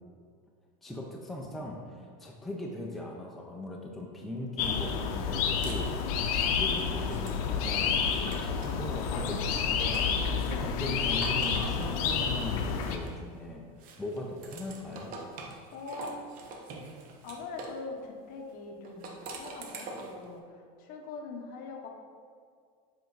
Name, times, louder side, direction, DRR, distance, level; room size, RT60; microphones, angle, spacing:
voice 1, 0.8-6.1 6.4-13.7 14.0-15.2, left 1 dB, ahead, -2 dB, 0.6 m, -39 dB
sound 1, 4.6-13.0, left 6 dB, 70° left, 0.7 m, -29 dB
sound 2, 5.1-8.8 9.2-13.4 13.8-17.8 18.8-20.2, right 3 dB, 45° right, 1.0 m, -46 dB
voice 2, 15.7-16.2 17.2-21.9, left 4 dB, 50° left, 2 dB, 1.1 m, -42 dB
7.6 x 4.6 x 4.0 m, 2.1 s
supercardioid pair, 140°, 19 cm